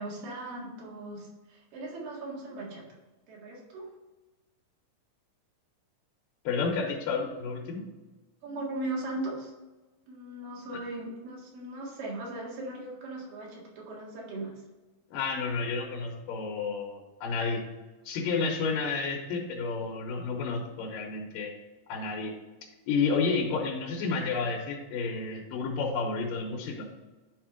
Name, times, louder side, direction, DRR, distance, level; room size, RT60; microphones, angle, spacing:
voice 1, 0.0-2.8 3.3-3.9 8.4-9.5 10.1-14.5, right 2 dB, 80° right, -3 dB, 3.5 m, -38 dB
voice 2, 6.4-7.9 15.1-17.6 18.0-21.5 21.9-22.3 22.9-26.9, left 4 dB, 85° left, -1 dB, 2.6 m, -31 dB
10.0 x 3.6 x 5.0 m, 1.2 s
omnidirectional pair, 3.9 m